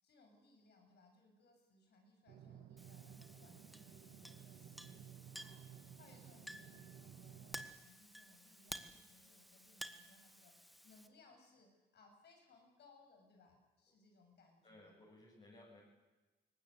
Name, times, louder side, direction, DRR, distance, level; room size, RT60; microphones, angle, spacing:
voice 1, 0.0-15.0, left 3 dB, 70° left, 3 dB, 7.5 m, -67 dB
sound 1, 2.3-7.7, right 9 dB, 85° right, 2.4 m, -56 dB
Chink clink, 2.8-11.1, equal, ahead, 1.7 m, -54 dB
voice 2, 14.6-15.8, left 1 dB, 35° left, -5 dB, 7.3 m, -60 dB
22.5 x 19.0 x 8.2 m, 1.2 s
cardioid pair, 85°, 18 cm